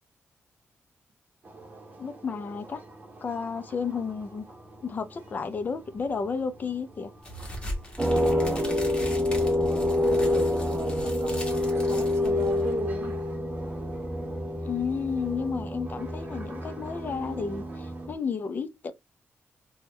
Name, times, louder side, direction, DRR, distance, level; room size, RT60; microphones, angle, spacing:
sound 1, 1.4-18.1, right 2 dB, 35° right, 0.9 m, -48 dB
voice 1, 2.0-2.8 3.2-4.4 4.8-7.1 14.6-18.9, left 5 dB, 40° left, 0.5 m, -32 dB
sound 2, 7.2-12.7, left 1 dB, 20° left, 1.1 m, -40 dB
sound 3, 8.0-18.1, left 1 dB, 15° right, 0.5 m, -27 dB
voice 2, 8.1-9.0 9.9-13.4, right 4 dB, 65° right, 0.7 m, -39 dB
3.4 x 2.2 x 3.0 m
wide cardioid pair, 155°, 5 cm